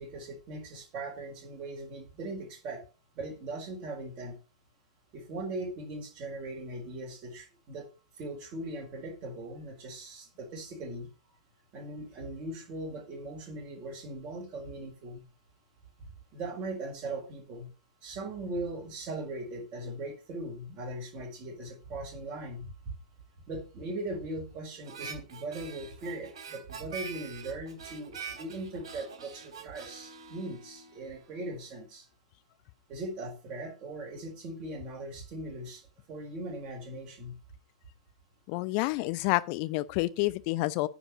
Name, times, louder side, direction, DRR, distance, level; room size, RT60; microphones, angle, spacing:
voice 1, 0.0-2.8 3.1-4.3 5.1-7.9 8.2-11.1 11.7-15.2 16.3-17.7 18.0-22.7 23.5-32.0 32.9-37.3, right 2 dB, 35° right, 4.5 m, -39 dB
Harmonica, 24.8-31.3, right 6 dB, 55° right, 3.3 m, -45 dB
voice 2, 38.5-40.9, left 19 dB, 40° left, 0.6 m, -29 dB
9.8 x 5.1 x 6.8 m
figure-of-eight pair, 100°, 3 cm